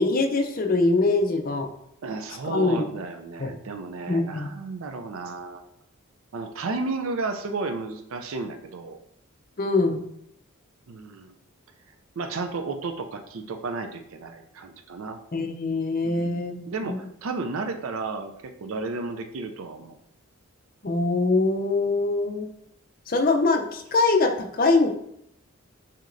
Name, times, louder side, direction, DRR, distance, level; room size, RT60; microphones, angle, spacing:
voice 1, 0.0-1.7 2.4-2.9 3.4-3.5 4.1-4.5 9.6-10.0 15.3-17.0 20.8-22.5 23.1-24.9, left 3 dB, 40° left, 4 dB, 0.5 m, -23 dB
voice 2, 2.0-5.6 6.3-9.0 10.9-11.3 12.2-15.2 16.0-16.4 16.7-20.0, right 3 dB, 75° right, 7 dB, 0.4 m, -33 dB
6.1 x 2.8 x 2.6 m, 0.74 s
head